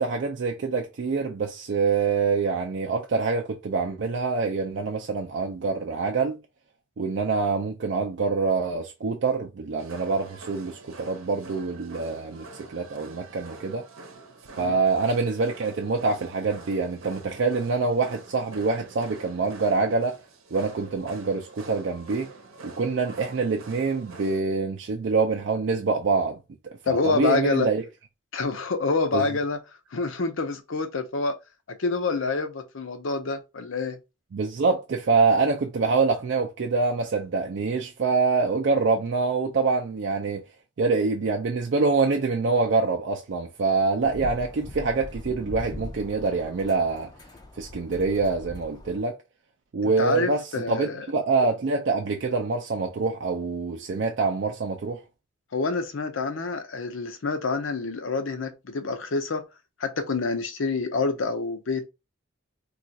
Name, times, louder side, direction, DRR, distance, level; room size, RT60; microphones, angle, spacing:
voice 1, 0.0-6.4 7.0-13.9 14.6-20.2 20.5-22.3 22.6-27.8 29.1-29.3 34.3-40.4 40.8-47.1 47.6-49.2 49.7-55.0, right 4 dB, 60° right, 0.4 m, -25 dB
sound 1, 9.8-24.4, right 3 dB, 85° right, 0.8 m, -46 dB
voice 2, 26.8-27.7 28.3-29.6 29.9-31.4 31.7-34.0 49.8-51.1 55.5-59.4 59.8-61.9, left 4 dB, 80° left, 0.6 m, -27 dB
sound 2, 44.0-49.0, left 1 dB, 20° left, 0.4 m, -40 dB
2.4 x 2.3 x 4.0 m
head